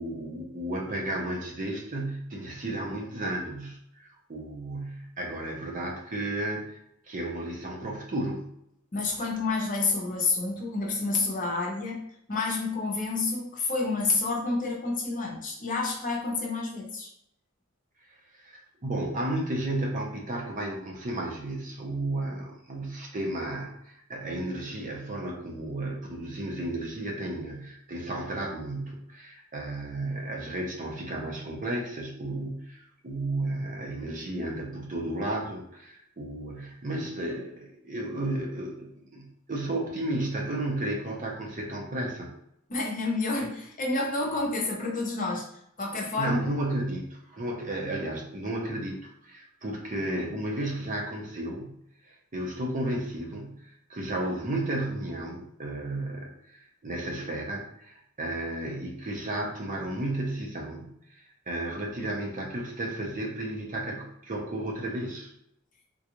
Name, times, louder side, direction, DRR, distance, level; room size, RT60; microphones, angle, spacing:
voice 1, 0.0-6.8 7.1-8.5 18.3-42.3 46.2-51.8 52.0-65.3, right 1 dB, 40° right, 0 dB, 0.7 m, -33 dB
voice 2, 8.9-12.0 12.3-17.1 42.7-45.4 45.8-46.4, left 3 dB, 40° left, -1 dB, 0.8 m, -29 dB
3.7 x 2.4 x 3.0 m, 0.76 s
head